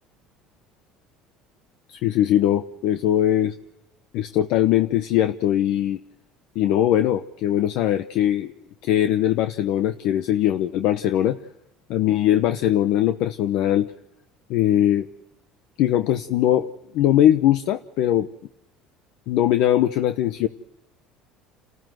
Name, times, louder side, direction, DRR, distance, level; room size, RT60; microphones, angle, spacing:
voice 1, 1.9-3.6 4.1-6.0 6.5-8.5 8.8-11.4 11.9-13.9 14.5-15.1 15.8-18.3 19.3-20.5, left 12 dB, 70° left, 9 dB, 0.9 m, -21 dB
29.5 x 14.0 x 7.8 m, 0.91 s
supercardioid pair, 110°, 0 cm